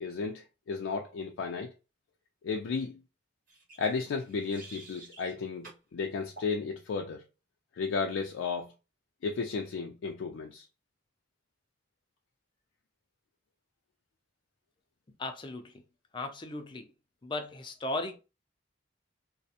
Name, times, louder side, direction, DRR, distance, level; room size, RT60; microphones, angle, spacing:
voice 1, 0.0-1.7 2.4-3.0 3.8-7.2 7.7-8.7 9.2-10.7, left 5 dB, 90° left, 0.4 m, -34 dB
sound 1, 3.5-5.3 5.6-5.8 6.4-6.6, right 3 dB, 50° right, 1.3 m, -51 dB
voice 2, 15.2-15.7 16.1-16.9 17.2-18.2, left 2 dB, 25° left, 0.4 m, -36 dB
2.4 x 2.1 x 2.7 m
head